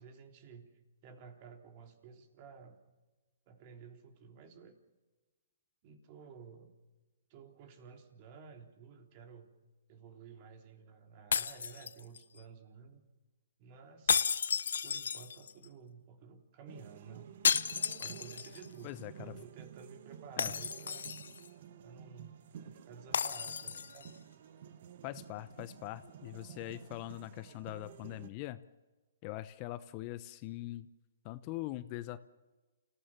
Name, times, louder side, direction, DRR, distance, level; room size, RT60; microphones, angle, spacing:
voice 1, 0.0-2.8 3.5-4.8 5.8-6.7 7.3-9.5 9.9-13.0 13.6-14.4 14.8-17.4 18.0-21.1 21.8-24.1, right 6 dB, 40° right, 5 dB, 3.6 m, -53 dB
sound 1, 11.3-12.4 14.1-15.6 17.4-18.7 19.0-19.1 20.4-21.5 23.1-24.1, left 6 dB, 75° left, 0.8 m, -33 dB
sound 2, 16.7-28.3, right 9 dB, 55° right, 1.5 m, -52 dB
voice 2, 18.8-19.3 20.4-20.5 25.0-28.6 29.2-30.9 31.2-32.2, left 16 dB, 35° left, 14 dB, 0.9 m, -42 dB
29.0 x 16.0 x 7.3 m, 1.2 s
hypercardioid pair, 140°, 0 cm